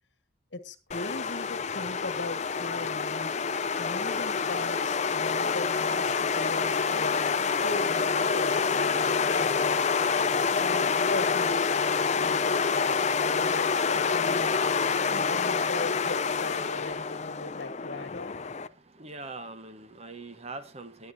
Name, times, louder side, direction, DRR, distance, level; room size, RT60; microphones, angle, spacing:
voice 1, 0.5-3.3 3.8-9.9 10.6-11.7 12.2-14.6 15.1-18.4, left 2 dB, 65° left, 1.5 m, -39 dB
sound 1, 0.9-18.7, left 5 dB, 35° left, 0.5 m, -27 dB
voice 2, 18.9-21.1, right 3 dB, 35° right, 1.1 m, -42 dB
19.5 x 9.4 x 2.7 m
head